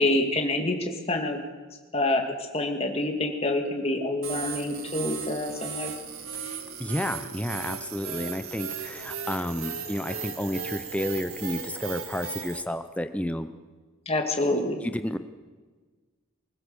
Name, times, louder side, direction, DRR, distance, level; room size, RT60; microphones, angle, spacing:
voice 1, 0.0-1.4 1.9-2.2 2.5-5.9 14.1-14.8, left 2 dB, 30° left, 3 dB, 2.2 m, -26 dB
sound 1, 4.2-12.6, right 6 dB, 85° right, 1.9 m, -36 dB
voice 2, 6.8-13.5 14.8-15.2, left 1 dB, 5° left, 10 dB, 0.6 m, -31 dB
24.0 x 15.5 x 7.0 m, 1.4 s
head